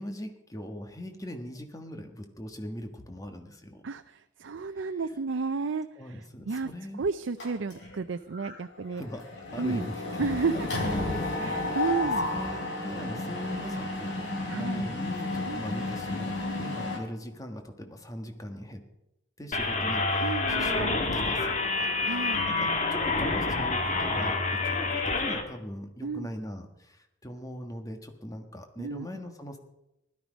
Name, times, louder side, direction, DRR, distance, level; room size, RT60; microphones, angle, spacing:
voice 1, 0.0-3.8 4.7-5.0 6.0-7.0 8.9-10.0 10.4-14.1 14.5-18.8 19.4-29.6, equal, 20° left, 5 dB, 1.4 m, -40 dB
voice 2, 3.8-6.7 7.0-9.0 9.6-9.9 10.2-10.7 11.4-12.3 14.5-14.9 15.5-15.6 20.2-21.0 22.0-22.5 26.0-26.3 28.8-29.1, right 4 dB, 80° right, 9 dB, 0.5 m, -32 dB
Mechanisms, 7.4-8.0 8.3-8.5 8.8-17.0, left 2 dB, 70° left, 4.1 m, -32 dB
sound 1, 19.5-25.4, left 3 dB, 40° left, 1.6 m, -28 dB
16.5 x 12.0 x 5.2 m, 0.89 s
head